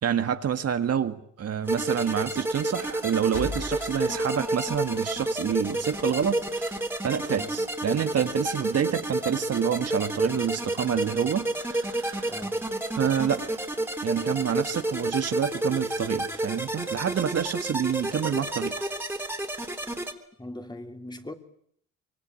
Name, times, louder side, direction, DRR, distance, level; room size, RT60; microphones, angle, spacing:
voice 1, 0.0-12.3 13.0-13.5 14.0-18.7, right 8 dB, 55° right, 1.7 m, -28 dB
sound 1, 1.7-20.1, right 1 dB, 5° right, 3.3 m, -30 dB
sound 2, 3.3-5.4, left 4 dB, 85° left, 5.3 m, -38 dB
voice 2, 12.3-12.7 20.4-21.3, left 1 dB, 15° left, 3.0 m, -40 dB
25.0 x 23.5 x 8.9 m
cardioid pair, 90°, 30 cm